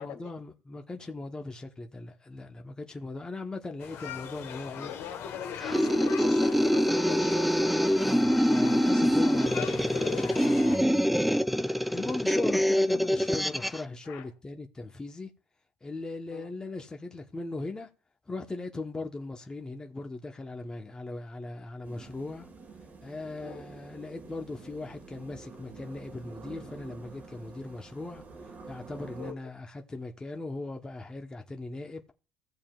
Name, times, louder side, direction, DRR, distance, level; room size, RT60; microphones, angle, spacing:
voice 1, 0.0-4.9 8.0-11.1 11.9-15.3 15.8-17.9 18.3-22.5 23.0-28.2 28.7-32.0, left 2 dB, 15° left, 0.9 m, -39 dB
sound 1, 3.8-10.8, left 8 dB, 55° left, 1.2 m, -41 dB
voice 2, 4.8-7.8 8.7-8.9 9.6-10.2 11.3-11.5 12.3-12.5 14.0-14.3 16.3-16.5 23.4-23.6 29.2-29.4, left 9 dB, 75° left, 2.0 m, -41 dB
sound 2, 5.6-13.8, equal, ahead, 0.3 m, -25 dB
sound 3, 21.8-29.3, right 4 dB, 35° right, 1.6 m, -48 dB
16.5 x 7.2 x 2.3 m
cardioid pair, 115°, 5 cm